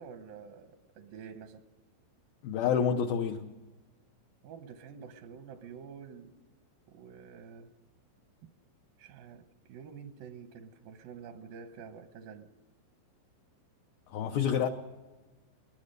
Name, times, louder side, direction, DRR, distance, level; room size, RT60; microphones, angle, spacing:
voice 1, 0.0-1.6 4.4-6.3 6.9-7.7 8.4-8.5 9.0-12.5, right 6 dB, 80° right, 8 dB, 2.1 m, -48 dB
voice 2, 2.4-3.5 14.1-14.7, left 7 dB, 85° left, 5 dB, 2.0 m, -28 dB
21.0 x 20.5 x 6.6 m, 1.2 s
omnidirectional pair, 5.4 m